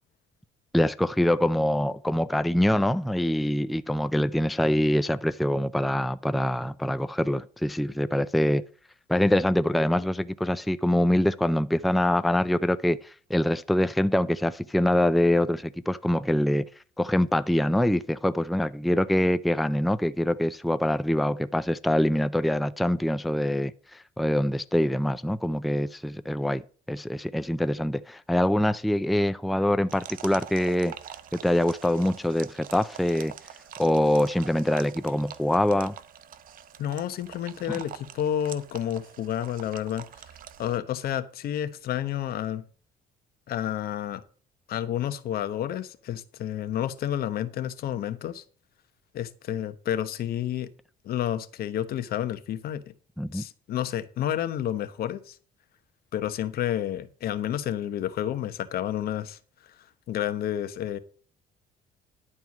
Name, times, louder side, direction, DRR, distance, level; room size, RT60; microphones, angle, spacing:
voice 1, 0.7-8.7 9.1-16.7 17.0-26.6 26.9-31.0 31.4-33.3 33.8-36.0 37.7-37.8 53.2-53.5, left 1 dB, ahead, 0.4 m, -24 dB
sound 1, 29.9-40.8, right 9 dB, 55° right, 0.9 m, -45 dB
voice 2, 36.8-40.1 40.6-42.6 43.5-44.2 44.7-48.4 49.1-50.7 51.0-52.8 53.3-55.4 56.1-59.4 60.1-61.0, left 11 dB, 65° left, 1.1 m, -30 dB
11.0 x 4.6 x 7.2 m
cardioid pair, 110°, 17 cm